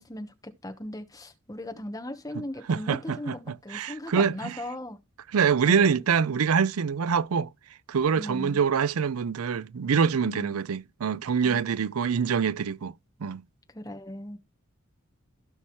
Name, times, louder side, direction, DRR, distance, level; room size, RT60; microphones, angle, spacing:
voice 1, 0.0-5.0 5.6-5.9 8.1-8.6 10.2-10.6 11.4-11.6 13.7-14.4, left 1 dB, 15° left, 1.2 m, -38 dB
voice 2, 2.7-4.6 5.3-7.5 7.9-12.9 13.2-13.4, right 6 dB, 90° right, 0.5 m, -25 dB
16.0 x 5.6 x 3.2 m
head